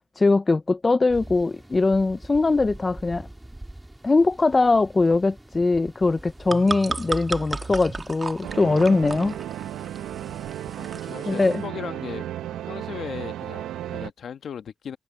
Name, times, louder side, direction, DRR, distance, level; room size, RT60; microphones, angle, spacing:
voice 1, 0.2-3.3 4.0-9.4 11.3-11.6, left 3 dB, 25° left, 0.5 m, -21 dB
sound 1, 1.1-11.2, right 1 dB, 10° right, 4.0 m, -46 dB
sound 2, 6.1-11.6, right 3 dB, 25° right, 2.4 m, -34 dB
sound 3, 8.4-14.1, right 12 dB, 80° right, 0.8 m, -34 dB
voice 2, 10.8-12.3 12.7-15.0, left 8 dB, 55° left, 1.4 m, -37 dB
cardioid pair, 90°, 0 cm